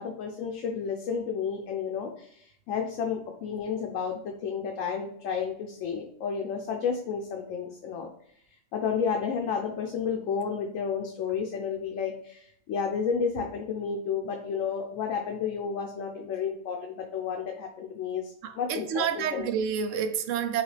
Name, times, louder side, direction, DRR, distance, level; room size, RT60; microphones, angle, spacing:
voice 1, 0.0-8.1 8.7-19.5, left 6 dB, 85° left, 1.0 m, -31 dB
voice 2, 18.4-20.6, right 8 dB, 80° right, 0.9 m, -29 dB
5.9 x 2.4 x 3.2 m
omnidirectional pair, 1.3 m